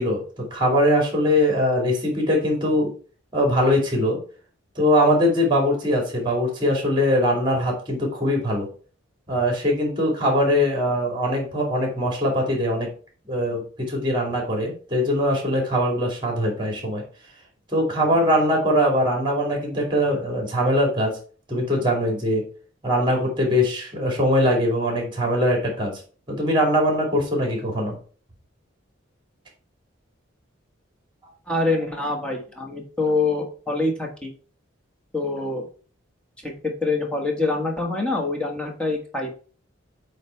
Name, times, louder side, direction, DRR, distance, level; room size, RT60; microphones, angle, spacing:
voice 1, 0.0-2.9 3.3-4.2 4.8-8.7 9.3-12.9 13.3-17.0 17.7-21.1 21.5-22.4 22.8-26.0 26.3-28.0, equal, 25° right, 0 dB, 2.4 m, -22 dB
voice 2, 31.5-34.3 35.1-35.7 36.4-39.3, left 3 dB, 5° left, 1 dB, 1.4 m, -25 dB
8.1 x 3.3 x 4.4 m, 0.40 s
head